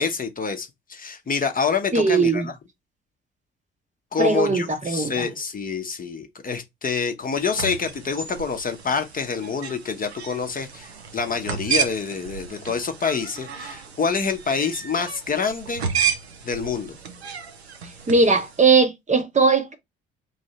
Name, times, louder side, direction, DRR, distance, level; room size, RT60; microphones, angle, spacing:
voice 1, 0.0-2.4 4.1-15.9 16.4-17.0, left 5 dB, 25° left, 0.8 m, -27 dB
voice 2, 1.9-2.5 4.2-5.3 18.1-19.7, right 4 dB, 25° right, 0.8 m, -19 dB
sound 1, 7.3-18.7, right 7 dB, 90° right, 0.5 m, -32 dB
3.2 x 2.7 x 4.2 m
figure-of-eight pair, 45°, 31 cm